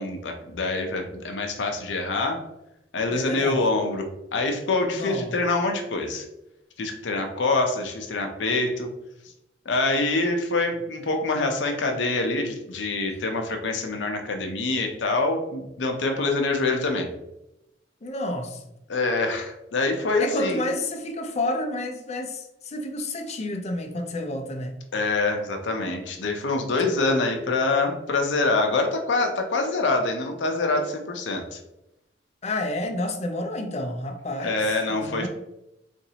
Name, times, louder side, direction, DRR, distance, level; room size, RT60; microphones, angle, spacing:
voice 1, 0.0-2.4 2.9-4.0 4.3-6.3 6.8-8.9 9.7-17.1 18.9-20.6 24.9-31.6 34.4-35.3, left 3 dB, 80° left, 0.6 m, -25 dB
voice 2, 3.1-3.6 4.9-5.3 18.0-18.6 20.2-24.7 32.4-34.6 34.9-35.3, left 1 dB, 40° left, 0.5 m, -30 dB
3.9 x 2.5 x 2.8 m
head